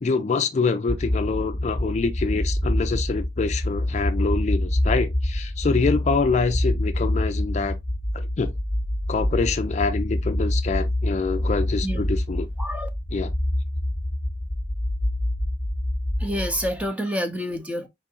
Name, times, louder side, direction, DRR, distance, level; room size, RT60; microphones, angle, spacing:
voice 1, 0.0-7.8 8.1-8.5 9.1-12.5 13.1-13.3, left 4 dB, 40° left, 0.4 m, -25 dB
sound 1, 0.9-16.9, left 1 dB, 20° left, 0.8 m, -26 dB
voice 2, 12.6-12.9 16.2-17.9, equal, 10° right, 0.6 m, -28 dB
4.4 x 3.5 x 2.8 m
head